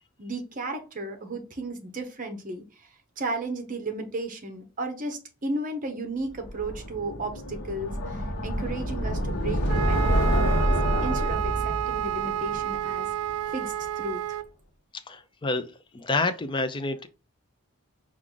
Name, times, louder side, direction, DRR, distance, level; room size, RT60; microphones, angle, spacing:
voice 1, 0.2-2.9 3.2-13.1 13.5-14.4, right 2 dB, 35° right, 0.8 m, -34 dB
sound 1, 6.4-13.5, equal, 80° left, 1.0 m, -27 dB
Wind instrument woodwind instrument, 9.7-14.5, right 10 dB, 90° right, 0.3 m, -30 dB
voice 2, 15.1-15.7 15.9-17.1, left 3 dB, 20° left, 0.4 m, -28 dB
4.7 x 2.5 x 3.7 m
head